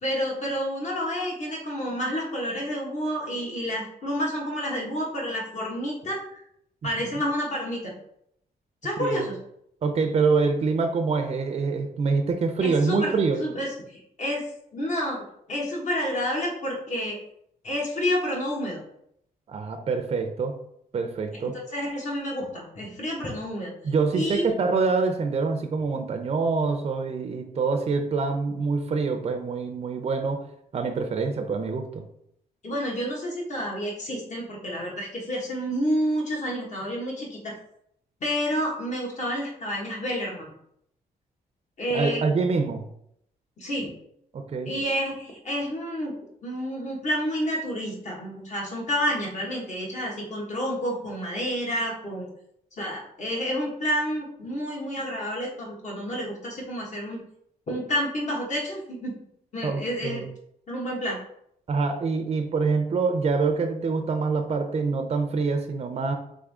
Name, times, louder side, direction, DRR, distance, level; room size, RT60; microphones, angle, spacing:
voice 1, 0.0-6.4 6.8-7.9 8.8-9.3 12.6-14.4 14.7-17.2 17.6-18.8 21.7-23.7 24.1-24.5 32.6-37.5 38.2-40.5 41.8-42.2 43.6-43.9 44.6-46.1 46.4-52.3 52.8-57.2 57.7-59.1 59.5-60.2 60.7-61.2, equal, 45° left, -2 dB, 1.5 m, -29 dB
voice 2, 9.8-13.4 19.5-20.6 20.9-21.6 23.8-30.4 30.7-32.0 41.9-42.9 44.3-44.7 59.6-60.3 61.7-66.1, right 4 dB, 40° right, 6 dB, 0.5 m, -25 dB
3.6 x 3.6 x 3.5 m, 0.73 s
cardioid pair, 105°, 16 cm